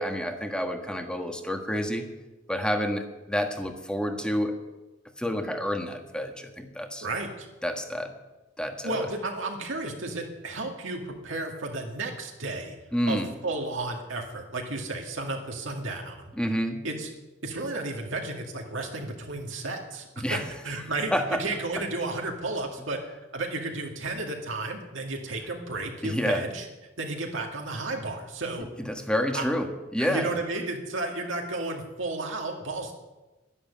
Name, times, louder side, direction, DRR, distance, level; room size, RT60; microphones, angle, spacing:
voice 1, 0.0-2.1 2.5-4.5 5.2-7.0 7.6-8.1 8.6-8.9 12.9-13.3 16.3-16.8 20.2-20.4 21.1-21.4 26.0-26.4 28.8-30.3, equal, 5° left, 5 dB, 1.5 m, -29 dB
voice 2, 7.0-7.5 8.8-12.8 13.1-16.3 16.8-17.1 17.4-20.4 20.6-23.0 23.3-26.7 27.0-28.7 29.3-29.4 30.0-32.9, right 2 dB, 75° right, 1 dB, 2.2 m, -33 dB
11.5 x 11.0 x 8.6 m, 1.1 s
head